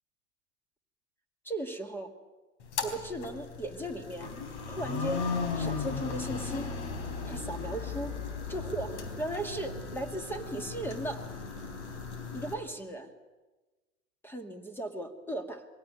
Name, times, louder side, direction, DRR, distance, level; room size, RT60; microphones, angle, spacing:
voice 1, 1.4-2.1 2.8-4.3 4.7-5.3 5.5-6.7 7.2-8.1 8.5-11.2 12.3-13.1 14.2-15.7, right 1 dB, 5° left, 7 dB, 2.3 m, -37 dB
sound 1, 2.6-12.5, left 5 dB, 60° left, 3.9 m, -36 dB
22.5 x 17.0 x 9.3 m, 1.2 s
hypercardioid pair, 95°, 40 cm